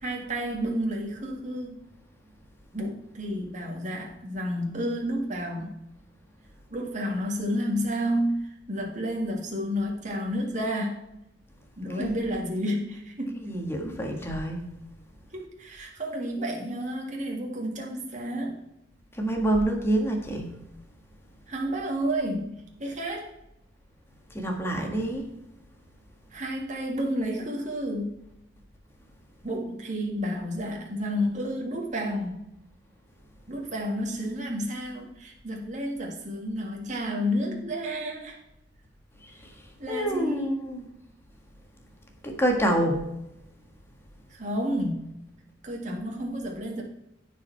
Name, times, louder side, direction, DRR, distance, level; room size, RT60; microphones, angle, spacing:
voice 1, 0.0-1.8 2.7-5.8 6.7-11.0 11.8-13.4 15.3-18.6 21.5-23.3 26.3-28.2 29.4-32.4 33.5-38.4 39.8-40.6 44.3-45.1 45.6-46.8, equal, 40° right, 0 dB, 1.8 m, -31 dB
voice 2, 13.5-14.6 19.2-20.5 24.3-25.2 39.2-39.3 39.9-40.9 42.2-43.0, right 1 dB, 15° left, 2 dB, 1.5 m, -27 dB
14.5 x 4.9 x 4.5 m, 0.87 s
head